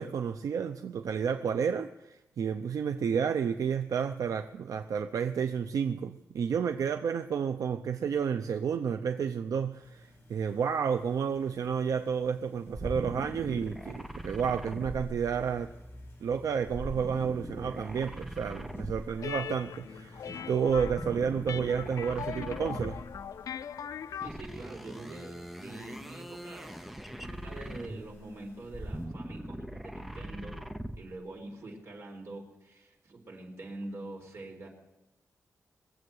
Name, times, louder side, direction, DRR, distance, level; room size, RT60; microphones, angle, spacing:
voice 1, 0.0-15.7 16.2-23.0, right 7 dB, 80° right, 0.6 m, -31 dB
sound 1, 9.8-29.1, equal, 35° left, 5.5 m, -55 dB
sound 2, 12.7-15.7 16.7-19.4 20.6-23.3 24.2-28.2 28.6-31.1, right 1 dB, 5° right, 0.7 m, -41 dB
sound 3, 19.2-24.3, left 8 dB, 75° left, 0.4 m, -40 dB
voice 2, 24.2-26.8 27.1-30.6 31.0-34.7, right 2 dB, 50° right, 4.3 m, -44 dB
22.0 x 7.9 x 7.9 m
wide cardioid pair, 150°, 6 cm